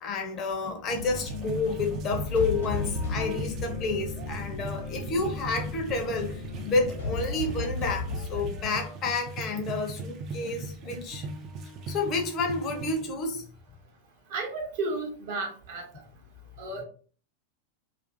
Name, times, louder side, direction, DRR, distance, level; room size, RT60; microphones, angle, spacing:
voice 1, 0.0-11.3 11.9-13.5, left 3 dB, 35° left, 0.6 m, -30 dB
sound 1, 0.9-8.8, left 3 dB, 65° left, 0.8 m, -35 dB
sound 2, 0.9-13.0, right 3 dB, 35° right, 0.4 m, -39 dB
voice 2, 14.3-15.9 16.6-16.8, right 3 dB, 55° right, 0.8 m, -33 dB
2.5 x 2.3 x 2.4 m
figure-of-eight pair, 90°, 0 cm